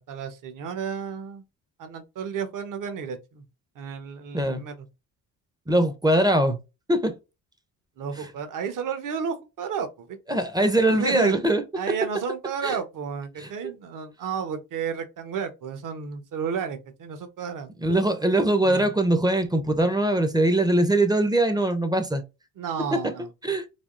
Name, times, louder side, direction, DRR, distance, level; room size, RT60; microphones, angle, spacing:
voice 1, 0.1-1.4 1.8-3.4 3.7-4.9 8.0-10.4 10.9-11.4 11.8-17.7 18.6-18.9 22.6-23.3, right 6 dB, 55° right, 0.8 m, -32 dB
voice 2, 4.3-4.6 5.7-6.6 6.9-7.1 10.3-11.6 12.6-12.8 13.4-13.5 17.8-22.2 22.9-23.0 23.4-23.7, right 1 dB, 10° right, 0.5 m, -22 dB
3.4 x 2.3 x 2.4 m
cardioid pair, 80°, 37 cm